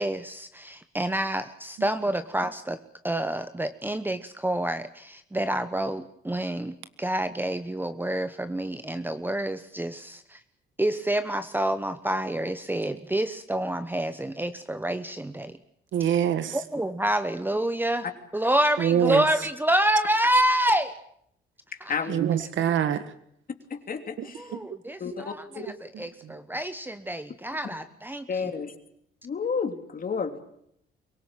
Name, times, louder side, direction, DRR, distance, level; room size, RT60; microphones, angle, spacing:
voice 1, 0.0-2.8 3.0-10.4 10.8-15.6 16.5-18.1 18.3-20.9 21.8-21.9 24.4-28.3, right 1 dB, 10° right, 11 dB, 1.1 m, -28 dB
voice 2, 15.9-16.6 18.8-19.5 22.1-23.1 24.2-24.6 25.9-26.3, right 9 dB, 75° right, 11 dB, 1.8 m, -26 dB
voice 3, 21.9-22.3 23.7-24.4 25.0-25.7 28.3-28.7 29.2-30.4, left 5 dB, 45° left, 7 dB, 3.0 m, -31 dB
24.0 x 17.5 x 9.0 m, 0.72 s
cardioid pair, 90°, 20 cm